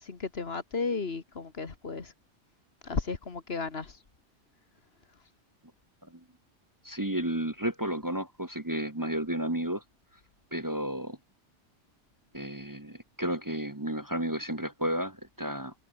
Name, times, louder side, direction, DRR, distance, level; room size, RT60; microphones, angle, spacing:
voice 1, 0.1-2.1 2.8-3.9, left 4 dB, 60° left, 2.0 m, -34 dB
voice 2, 6.8-9.8 10.5-11.2 12.3-15.7, right 1 dB, 15° right, 1.5 m, -32 dB
omnidirectional pair, 1.2 m